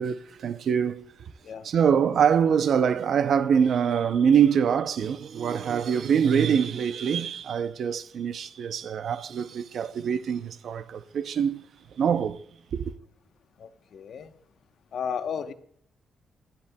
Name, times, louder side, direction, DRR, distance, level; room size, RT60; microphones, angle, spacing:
voice 1, 0.0-1.3 1.6-11.6 12.0-12.4 12.7-12.9, right 7 dB, 60° right, 0.6 m, -24 dB
voice 2, 13.6-14.3 14.9-15.5, left 7 dB, 60° left, 0.9 m, -33 dB
19.0 x 13.0 x 2.3 m
cardioid pair, 140°, 0 cm